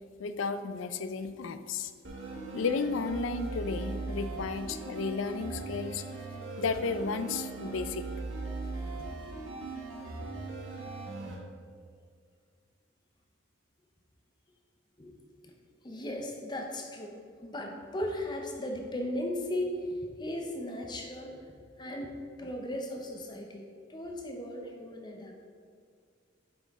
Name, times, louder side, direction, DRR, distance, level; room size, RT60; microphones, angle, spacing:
voice 1, 0.2-1.9 2.5-6.1 6.6-8.0, left 4 dB, 65° left, 10 dB, 0.4 m, -33 dB
sound 1, 2.0-11.4, right 3 dB, 70° right, 1.3 m, -39 dB
voice 2, 15.0-25.5, left 1 dB, 20° left, 2 dB, 0.6 m, -37 dB
7.9 x 5.6 x 3.6 m, 2.1 s
head